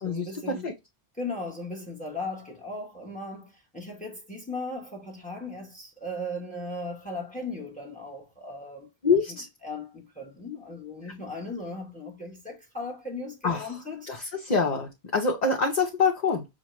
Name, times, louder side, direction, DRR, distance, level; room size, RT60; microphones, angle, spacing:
voice 1, 0.0-0.7 1.1-8.9 9.3-14.1, left 2 dB, 10° left, 0.9 m, -37 dB
voice 2, 9.0-9.5 13.4-13.7 14.1-16.5, left 4 dB, 45° left, 0.8 m, -25 dB
6.2 x 2.2 x 3.0 m
omnidirectional pair, 1.1 m